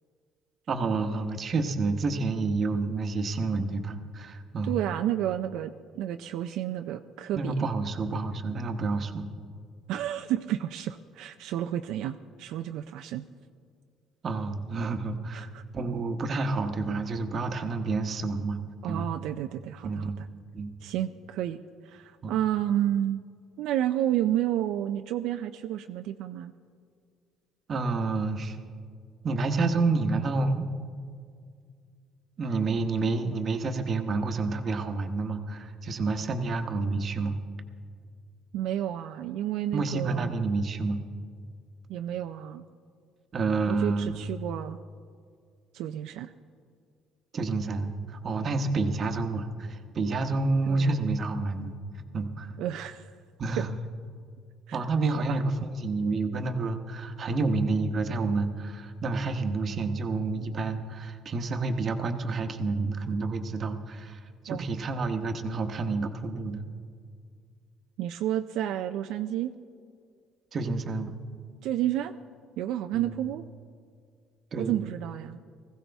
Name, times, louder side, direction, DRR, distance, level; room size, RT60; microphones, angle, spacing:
voice 1, 0.7-4.8 7.3-9.3 14.2-15.5 15.7-18.6 18.9-19.0 19.8-20.2 20.5-20.7 22.2-22.3 27.7-28.6 29.2-30.7 32.4-37.4 39.7-41.0 43.3-44.2 47.3-47.9 48.2-51.7 52.1-52.5 53.4-53.8 54.7-55.5 55.8-66.6 70.5-71.1 73.0-73.1 74.5-74.9, right 3 dB, 40° right, 7 dB, 1.0 m, -29 dB
voice 2, 4.6-7.6 9.9-13.3 15.3-15.6 18.8-20.3 20.8-21.6 21.8-23.2 23.6-26.5 38.5-40.3 41.9-42.6 43.7-44.8 45.7-46.3 50.7-51.1 52.6-53.1 53.6-53.7 54.7-55.4 64.5-64.7 68.0-69.5 71.6-72.1 72.6-73.4 74.6-75.4, right 12 dB, 75° right, 8 dB, 0.4 m, -31 dB
20.0 x 15.0 x 3.5 m, 2.2 s
cardioid pair, 120°, 0 cm